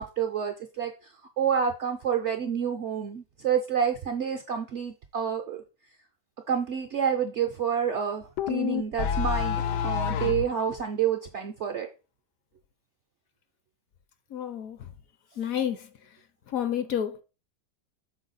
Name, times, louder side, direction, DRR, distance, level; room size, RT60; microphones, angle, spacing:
voice 1, 0.0-5.6 6.5-11.9, right 8 dB, 65° right, 0.7 m, -29 dB
sound 1, 8.4-10.5, left 8 dB, 85° left, 1.2 m, -27 dB
voice 2, 14.3-14.8 15.4-15.8 16.5-17.2, left 9 dB, 65° left, 0.9 m, -29 dB
6.3 x 4.1 x 4.0 m
omnidirectional pair, 1.8 m